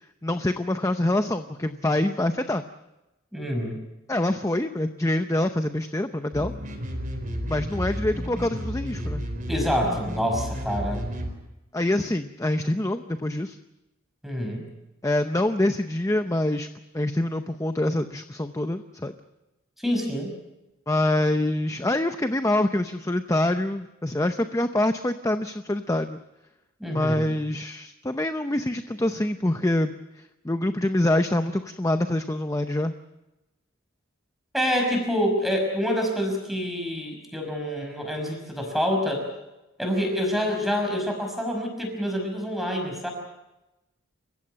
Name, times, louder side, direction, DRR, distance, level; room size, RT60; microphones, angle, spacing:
voice 1, 0.2-2.6 4.1-6.5 7.5-9.2 11.7-13.6 15.0-16.7 16.9-19.1 20.9-26.2 26.9-29.9 30.4-32.9, left 1 dB, 15° left, 8 dB, 0.7 m, -25 dB
voice 2, 3.3-3.8 9.5-11.1 14.2-14.6 19.8-20.3 26.8-27.3 34.5-39.3 39.8-43.1, equal, ahead, 2 dB, 5.7 m, -27 dB
sound 1, 6.3-11.3, equal, 40° right, 4.4 m, -32 dB
29.0 x 16.0 x 7.5 m, 0.98 s
head